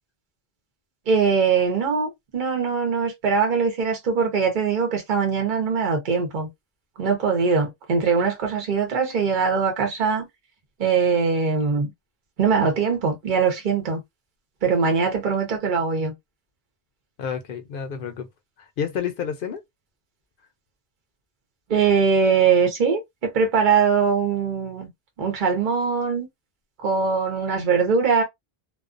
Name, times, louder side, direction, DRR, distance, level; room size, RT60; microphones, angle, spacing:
voice 1, 1.1-6.5 7.0-10.2 10.8-11.9 12.4-14.0 14.6-16.1 21.7-24.9 25.2-26.3 26.8-28.2, right 5 dB, 55° right, 0.9 m, -22 dB
voice 2, 17.2-18.3 18.6-19.6, left 7 dB, 65° left, 0.7 m, -29 dB
2.3 x 2.2 x 2.4 m
omnidirectional pair, 1.0 m